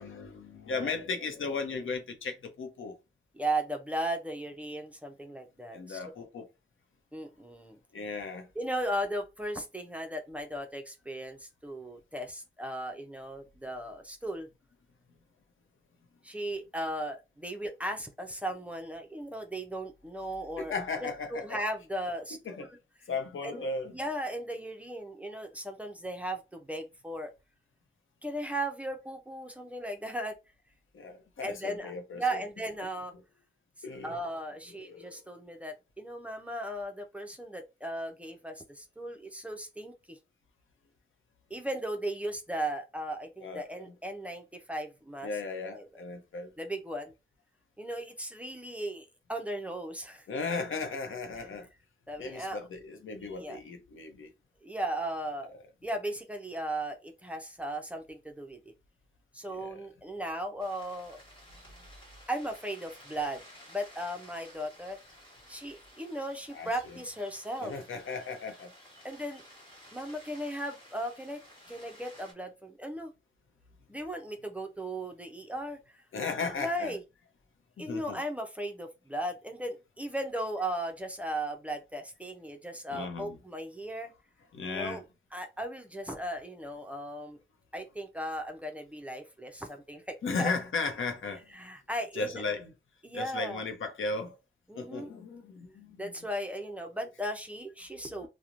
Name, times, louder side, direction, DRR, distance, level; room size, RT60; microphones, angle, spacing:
voice 1, 0.0-2.9 5.7-6.5 7.9-8.5 20.6-21.6 22.5-22.7 23.1-24.0 30.9-32.4 33.8-34.2 34.7-35.2 43.4-43.9 45.2-46.5 50.3-51.7 52.2-54.3 59.5-59.8 66.5-67.0 67.6-68.7 76.1-76.9 77.8-78.2 82.9-83.4 84.5-85.0 90.2-91.4 92.1-92.7 93.1-94.4 94.8-96.2 98.2-98.3, left 4 dB, 90° left, 0.6 m, -36 dB
voice 2, 3.3-6.0 7.1-7.8 8.6-14.5 16.2-20.7 21.0-21.1 21.4-22.4 23.4-23.6 23.9-27.3 28.2-30.4 31.4-33.1 34.0-40.2 41.5-45.3 45.7-46.0 46.6-47.1 47.8-50.3 51.4-51.5 52.1-52.6 53.3-53.6 54.6-55.5 55.8-58.7 59.3-61.2 62.3-63.4 63.7-65.0 65.5-67.7 69.0-69.4 69.9-71.4 71.7-73.1 73.9-75.8 76.6-77.0 77.8-84.1 84.7-85.0 85.3-87.4 87.7-90.5 91.5-92.4 93.0-93.6 94.7-95.1 96.0-98.3, right 1 dB, 5° right, 0.4 m, -36 dB
sound 1, 60.6-72.3, equal, 25° left, 1.2 m, -54 dB
2.9 x 2.0 x 2.4 m
wide cardioid pair, 155°, 20 cm